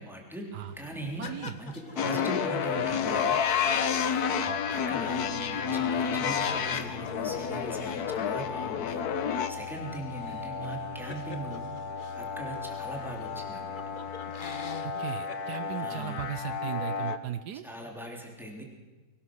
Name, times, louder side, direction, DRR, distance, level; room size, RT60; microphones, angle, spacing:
voice 1, 0.0-1.3 1.6-3.4 4.7-9.0 9.5-11.7 12.2-13.8 15.8-16.2 17.6-18.6, right 1 dB, ahead, 0 dB, 3.6 m, -40 dB
sound 1, 0.6-14.7, left 6 dB, 50° right, 6.1 m, -48 dB
sound 2, 1.2-6.1 6.3-6.4 6.7-12.3 12.9-13.0 13.2-15.8, left 4 dB, 35° left, 1.1 m, -46 dB
voice 2, 1.2-1.6 2.0-2.2 4.5-4.6 14.8-17.6, right 10 dB, 75° right, 12 dB, 1.4 m, -37 dB
sound 3, 2.0-17.2, left 7 dB, 70° left, 1.5 m, -31 dB
22.0 x 19.0 x 6.4 m, 1.3 s
omnidirectional pair, 1.8 m